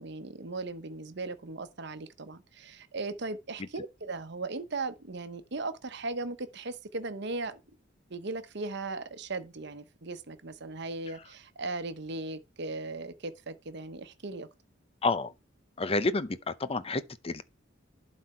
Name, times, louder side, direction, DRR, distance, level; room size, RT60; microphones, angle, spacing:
voice 1, 0.0-7.6 8.1-14.5, right 3 dB, 65° right, 1.0 m, -38 dB
voice 2, 15.0-15.3 15.8-17.4, left 3 dB, 30° left, 0.6 m, -29 dB
11.5 x 4.3 x 4.4 m
head